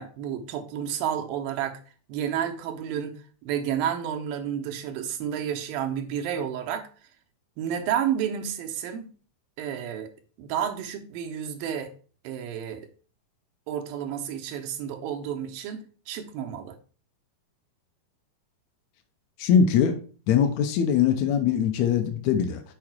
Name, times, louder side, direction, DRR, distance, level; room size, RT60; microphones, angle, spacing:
voice 1, 0.0-1.8 2.1-3.2 3.4-6.9 7.6-9.1 9.6-10.1 10.4-11.9 12.2-12.9 13.7-16.8, right 9 dB, 80° right, 2.6 m, -31 dB
voice 2, 19.4-20.0 20.3-22.6, left 7 dB, 80° left, 1.6 m, -22 dB
6.9 x 4.8 x 4.4 m
omnidirectional pair, 4.2 m